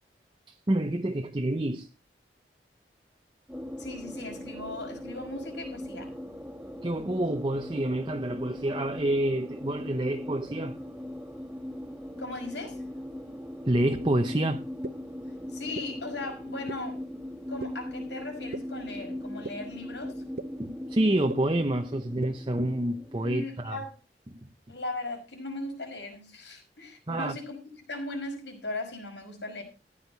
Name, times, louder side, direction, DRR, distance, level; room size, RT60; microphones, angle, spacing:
voice 1, 0.7-1.9 6.8-10.8 13.7-14.6 20.6-23.8 24.3-24.5 27.1-27.3, right 1 dB, 30° right, 0.8 m, -28 dB
sound 1, 3.5-23.4, left 1 dB, 5° right, 1.8 m, -40 dB
voice 2, 3.8-6.1 12.2-12.8 15.5-17.0 17.5-20.2 23.2-24.0 24.7-27.6 27.9-29.6, left 2 dB, 85° left, 5.6 m, -38 dB
sound 2, 13.9-14.0 14.8-14.9 15.7-15.8 16.7-16.8 17.6-17.7 18.5-18.6 19.4-19.5 20.4-20.5 21.3-21.4 22.2-22.3, right 3 dB, 60° right, 0.7 m, -35 dB
15.0 x 10.0 x 4.0 m
head